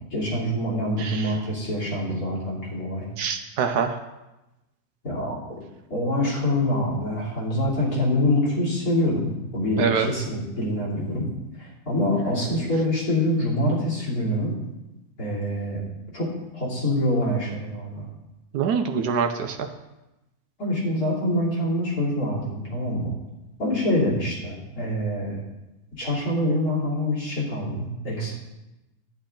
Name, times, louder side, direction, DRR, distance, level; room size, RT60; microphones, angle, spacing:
voice 1, 0.1-3.0 5.0-5.4 5.9-11.3 11.6-14.6 15.2-15.8 16.1-16.3 16.5-18.1 20.6-23.1 23.6-25.4 26.0-28.4, left 1 dB, 70° left, -5 dB, 3.4 m, -25 dB
voice 2, 1.0-1.4 3.2-4.0 9.8-10.1 18.5-19.7, right 6 dB, 85° right, 5 dB, 1.2 m, -25 dB
10.5 x 8.9 x 3.8 m, 0.99 s
omnidirectional pair, 1.6 m